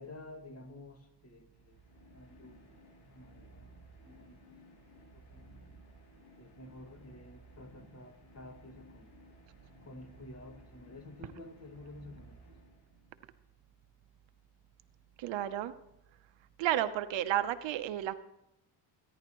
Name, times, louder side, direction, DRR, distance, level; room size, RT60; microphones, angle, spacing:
voice 1, 0.0-1.8 2.1-2.8 3.1-3.7 4.0-4.6 5.1-5.4 6.4-9.1 9.8-12.6, left 1 dB, 35° left, 3 dB, 2.2 m, -51 dB
sound 1, 1.4-13.2, right 1 dB, 60° left, 3.2 m, -57 dB
voice 2, 15.2-15.7 16.6-18.1, right 12 dB, 80° right, 10 dB, 0.9 m, -32 dB
24.0 x 10.5 x 3.1 m, 0.85 s
cardioid pair, 105°, 44 cm